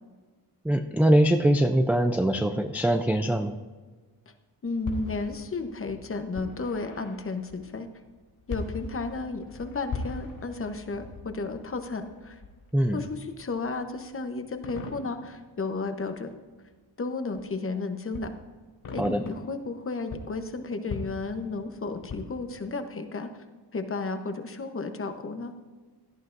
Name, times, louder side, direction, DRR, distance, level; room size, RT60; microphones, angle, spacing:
voice 1, 0.6-3.5 12.7-13.0 19.0-19.2, right 1 dB, 5° right, 5 dB, 0.3 m, -22 dB
voice 2, 4.6-7.9 8.5-12.4 12.9-16.3 17.0-18.3 18.9-23.3 23.7-25.5, left 3 dB, 30° left, 7 dB, 0.9 m, -33 dB
sound 1, 4.7-16.7 17.4-17.5 18.1-19.7 20.0-22.8, left 3 dB, 60° left, 3.6 m, -41 dB
17.0 x 12.0 x 2.6 m, 1.4 s
wide cardioid pair, 170°, 41 cm